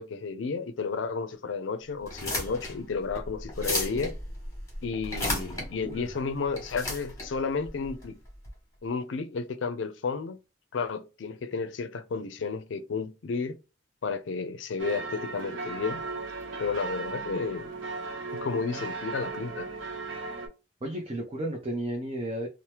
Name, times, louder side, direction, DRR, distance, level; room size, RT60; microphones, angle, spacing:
voice 1, 0.0-4.1 4.8-8.2 8.8-10.4 10.7-13.6 14.0-16.0 16.6-17.8 18.3-19.7, left 4 dB, 80° left, 0.4 m, -32 dB
sound 1, 2.0-8.5, left 1 dB, 15° left, 1.2 m, -34 dB
voice 2, 5.2-6.1 20.8-22.5, right 1 dB, 30° right, 0.5 m, -34 dB
sound 2, 14.8-20.5, right 3 dB, 80° right, 0.7 m, -37 dB
2.8 x 2.1 x 3.2 m
head